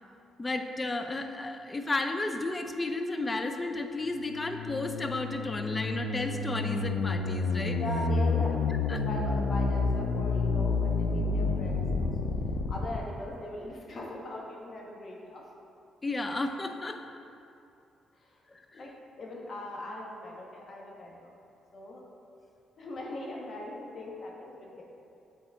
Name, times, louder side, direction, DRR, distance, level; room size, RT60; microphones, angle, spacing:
voice 1, 0.4-7.8 8.3-8.4 8.9-9.0 16.0-17.0 18.5-18.6, left 2 dB, 25° left, 6 dB, 0.5 m, -33 dB
sound 1, 4.2-13.0, left 4 dB, 90° left, 0.4 m, -29 dB
voice 2, 7.8-12.1 12.7-15.4 18.2-18.4 18.7-18.9 19.2-21.3 21.7-22.0 22.8-24.8, left 1 dB, 55° left, -2 dB, 1.3 m, -40 dB
8.2 x 4.1 x 3.5 m, 2.6 s
supercardioid pair, 65°, 0 cm